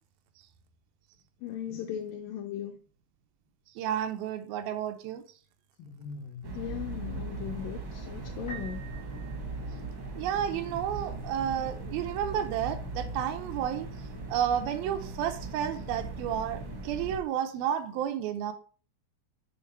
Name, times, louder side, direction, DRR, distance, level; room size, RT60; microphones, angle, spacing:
voice 1, 1.4-2.8 5.8-8.9, left 9 dB, 80° left, 5 dB, 2.0 m, -38 dB
voice 2, 3.8-5.2 10.2-13.9 14.3-18.5, right 9 dB, 80° right, 8 dB, 2.3 m, -31 dB
sound 1, 6.4-17.2, right 3 dB, 65° right, 1.1 m, -39 dB
Piano, 8.5-10.3, right 6 dB, 60° left, 0.4 m, -47 dB
7.1 x 3.3 x 4.4 m, 0.41 s
omnidirectional pair, 4.3 m